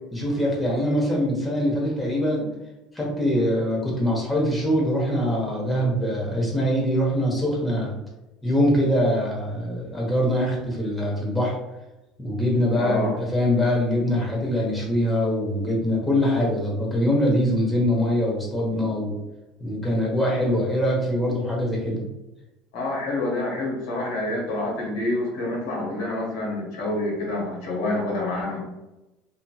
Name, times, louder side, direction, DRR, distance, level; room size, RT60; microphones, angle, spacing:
voice 1, 0.1-2.5 2.9-7.9 8.4-11.6 12.2-19.2 19.6-22.1, equal, 10° left, -3 dB, 1.0 m, -23 dB
voice 2, 12.7-13.1 22.7-28.7, left 2 dB, 85° left, -3 dB, 1.1 m, -27 dB
2.8 x 2.7 x 2.3 m, 1.0 s
supercardioid pair, 95°, 0 cm